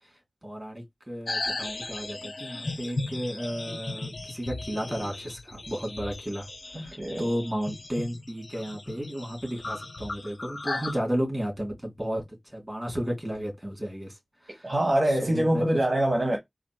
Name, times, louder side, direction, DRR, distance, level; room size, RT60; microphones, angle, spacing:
voice 1, 0.4-14.7 15.1-15.6, equal, 20° right, 2.6 m, -33 dB
sound 1, 1.3-11.0, left 2 dB, 70° left, 0.6 m, -36 dB
voice 2, 6.7-7.3 14.6-16.4, right 1 dB, 40° right, 1.1 m, -24 dB
4.1 x 2.5 x 4.5 m
wide cardioid pair, 70°, 0 cm